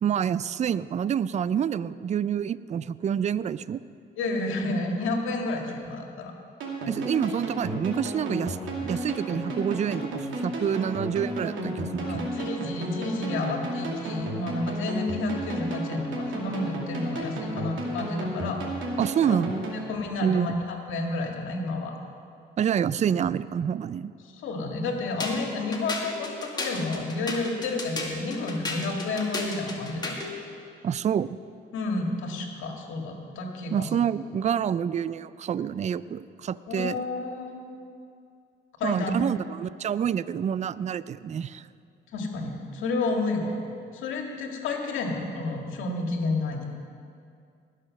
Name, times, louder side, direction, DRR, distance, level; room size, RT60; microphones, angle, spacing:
voice 1, 0.0-3.8 6.9-12.1 19.0-19.7 20.2-20.6 22.6-24.1 30.8-31.4 33.7-37.0 38.8-41.7, right 8 dB, 35° right, 17 dB, 0.4 m, -27 dB
voice 2, 4.2-6.3 12.0-18.6 19.3-19.4 19.9-21.9 24.2-30.1 31.7-33.9 36.7-37.6 38.8-39.1 42.1-43.6 43.9-46.7, left 2 dB, 85° left, 2 dB, 1.8 m, -30 dB
sound 1, 6.6-19.8, right 1 dB, 75° right, 2.6 m, -33 dB
sound 2, 25.2-30.4, left 2 dB, 20° left, 2.1 m, -34 dB
19.5 x 6.6 x 6.4 m, 2.4 s
cardioid pair, 90°, 20 cm